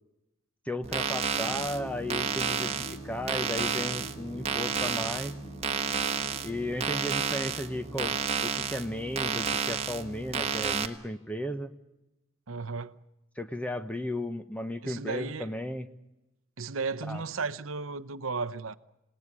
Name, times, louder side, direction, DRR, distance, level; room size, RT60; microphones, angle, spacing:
voice 1, 0.7-5.3 6.4-11.7 13.4-15.9 17.1-17.2, left 1 dB, 5° left, 1.0 m, -35 dB
sound 1, 0.8-10.9, right 6 dB, 30° right, 1.4 m, -31 dB
sound 2, 1.3-9.4, left 1 dB, 70° left, 1.5 m, -47 dB
voice 2, 12.5-13.0 14.8-15.6 16.6-18.8, right 4 dB, 75° right, 0.8 m, -34 dB
27.5 x 18.5 x 9.8 m
head